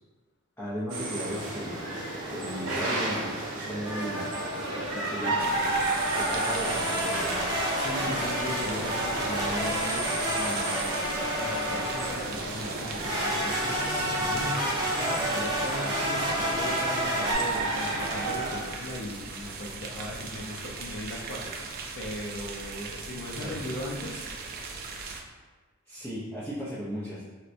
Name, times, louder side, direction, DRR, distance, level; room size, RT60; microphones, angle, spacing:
voice 1, 0.6-1.9 2.3-5.8 6.2-7.4 14.3-14.5 23.4-23.8 25.9-27.2, equal, 10° left, -11 dB, 0.6 m, -36 dB
sound 1, 0.9-18.6, right 2 dB, 65° right, 0.8 m, -33 dB
sound 2, 3.8-4.8 5.9-12.3 13.0-17.3, equal, 20° right, 1.0 m, -30 dB
sound 3, 5.4-25.2, right 4 dB, 45° right, 0.4 m, -39 dB
voice 2, 7.8-11.0 11.3-24.3, left 1 dB, 50° left, -1 dB, 0.6 m, -38 dB
4.2 x 2.2 x 2.5 m, 1.4 s
head